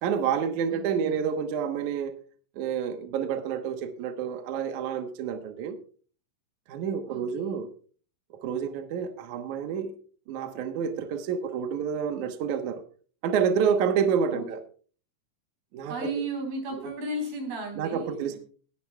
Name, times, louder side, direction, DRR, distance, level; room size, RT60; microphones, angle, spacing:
voice 1, 0.0-2.2 2.6-5.8 6.7-7.7 8.3-9.9 10.3-12.8 13.2-14.6 15.7-16.1 17.8-18.4, right 7 dB, 70° right, 6 dB, 2.3 m, -28 dB
voice 2, 0.7-1.3 7.1-7.6 14.3-14.5 15.9-18.4, right 1 dB, 85° right, 3 dB, 5.7 m, -35 dB
20.0 x 11.0 x 2.3 m, 0.40 s
omnidirectional pair, 4.1 m